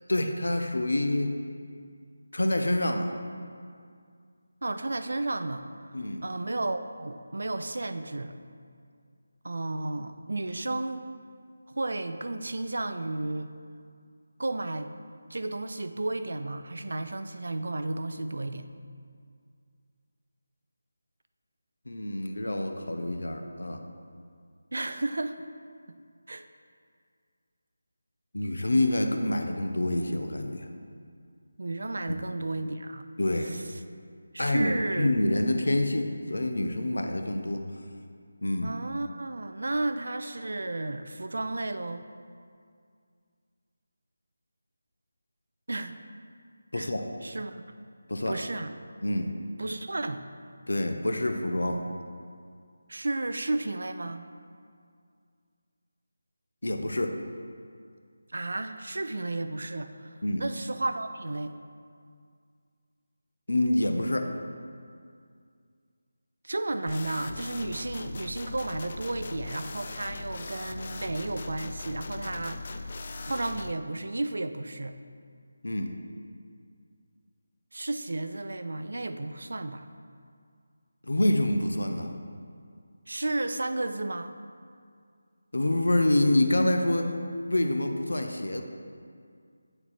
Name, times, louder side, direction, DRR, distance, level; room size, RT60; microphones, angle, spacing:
voice 1, 0.1-1.3 2.3-3.1 5.9-6.2 21.9-23.9 28.3-30.7 32.1-32.2 33.2-33.7 34.4-37.6 38.4-38.7 46.7-47.1 48.1-48.4 49.0-49.3 50.7-51.8 56.6-57.1 60.2-60.4 63.5-64.3 75.6-75.9 81.0-82.1 85.5-87.2 87.5-88.6, left 1 dB, 75° left, 5 dB, 0.6 m, -27 dB
voice 2, 4.6-5.6 6.2-8.3 9.4-11.1 11.7-13.5 14.4-14.9 15.3-18.7 24.7-25.4 25.9-26.0 26.3-26.4 31.6-33.1 33.4-33.6 34.3-35.1 38.6-42.0 45.7-46.0 46.7-46.9 47.2-47.6 48.3-48.7 49.6-50.3 52.9-54.2 58.3-61.5 66.4-72.9 73.2-75.0 77.7-79.9 83.1-84.3, right 2 dB, 65° right, 9 dB, 0.4 m, -33 dB
sound 1, 66.9-73.7, left 3 dB, 45° left, 0.3 m, -39 dB
8.9 x 4.4 x 4.2 m, 2.2 s
figure-of-eight pair, 160°, 0 cm